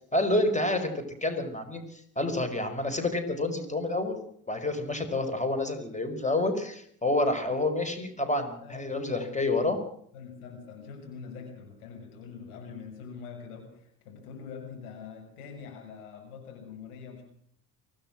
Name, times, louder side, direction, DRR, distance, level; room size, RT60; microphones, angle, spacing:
voice 1, 0.1-4.2 4.5-9.8, left 2 dB, 15° left, 8 dB, 5.4 m, -28 dB
voice 2, 8.6-9.7 10.1-17.2, left 6 dB, 75° left, 2 dB, 6.4 m, -44 dB
24.5 x 17.5 x 6.2 m, 0.65 s
figure-of-eight pair, 55°, 44 cm